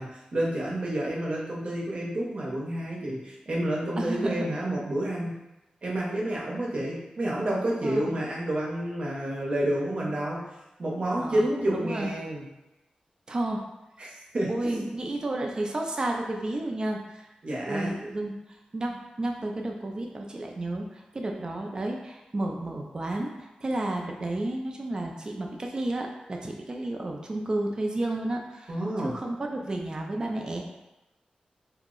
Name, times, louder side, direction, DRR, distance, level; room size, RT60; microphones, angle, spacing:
voice 1, 0.0-5.4 5.8-10.5 10.8-12.5 14.0-14.9 17.4-18.0 28.7-29.2, right 1 dB, 50° right, -4 dB, 0.7 m, -29 dB
voice 2, 4.0-4.5 7.8-8.2 11.2-12.1 13.3-13.6 14.5-17.3 17.6-30.6, right 1 dB, 30° right, 1 dB, 0.3 m, -32 dB
2.7 x 2.0 x 3.7 m, 0.98 s
wide cardioid pair, 130°, 3 cm